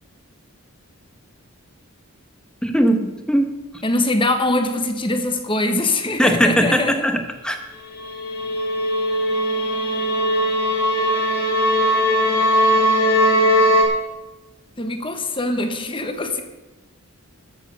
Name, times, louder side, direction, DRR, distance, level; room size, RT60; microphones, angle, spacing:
voice 1, 2.6-3.6 6.2-7.6, equal, 5° left, 5 dB, 1.1 m, -19 dB
voice 2, 3.8-6.9 14.8-16.4, left 2 dB, 25° left, 7 dB, 1.2 m, -22 dB
sound 1, 7.9-13.8, equal, 40° left, 4.0 m, -19 dB
13.5 x 7.5 x 6.6 m, 1.1 s
head